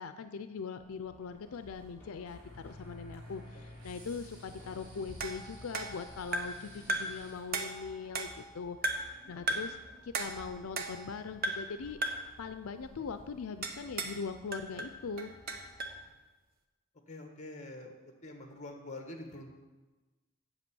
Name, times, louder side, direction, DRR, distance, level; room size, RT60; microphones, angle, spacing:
voice 1, 0.0-8.3 8.5-9.8 10.0-12.0 12.4-15.3, left 5 dB, 85° left, 10 dB, 0.5 m, -41 dB
sound 1, 0.7-16.1, left 1 dB, 10° left, 2.8 m, -57 dB
sound 2, 2.3-7.4, left 1 dB, 60° right, 3.9 m, -51 dB
sound 3, 5.2-6.6 6.9-7.2 7.5-8.5 8.8-9.2 9.5-9.8 10.1-11.1 11.4-11.8 12.0-12.3 13.6-14.2 14.5-16.0, right 2 dB, 45° right, 0.9 m, -36 dB
voice 2, 17.1-19.5, left 2 dB, 35° left, 4 dB, 1.4 m, -45 dB
8.1 x 8.0 x 6.9 m, 1.2 s
head